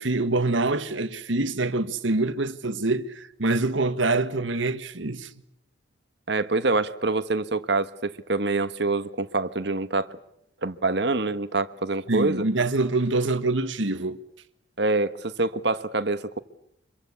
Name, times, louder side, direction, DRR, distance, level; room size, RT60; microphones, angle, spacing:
voice 1, 0.0-5.3 12.1-14.2, right 2 dB, 75° right, 1.5 m, -25 dB
voice 2, 6.3-10.2 10.6-12.4 14.8-16.4, right 3 dB, 60° right, 1.3 m, -26 dB
25.5 x 23.0 x 8.3 m
head